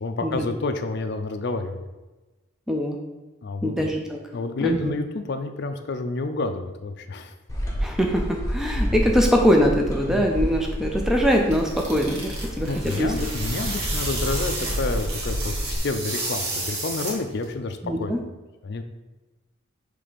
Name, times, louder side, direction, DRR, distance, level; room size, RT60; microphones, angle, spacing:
voice 1, 0.0-1.8 3.4-3.9 4.3-7.3 10.1-10.3 12.7-18.1 18.6-18.8, left 3 dB, 50° left, 7 dB, 0.4 m, -29 dB
voice 2, 2.7-3.0 3.6-4.2 4.6-4.9 7.8-13.1 17.8-18.2, equal, ahead, 1 dB, 0.4 m, -22 dB
sound 1, 7.5-15.8, equal, 15° left, 0.9 m, -29 dB
sound 2, 11.1-17.5, right 2 dB, 85° right, 1.5 m, -32 dB
5.7 x 3.4 x 5.0 m, 1.2 s
head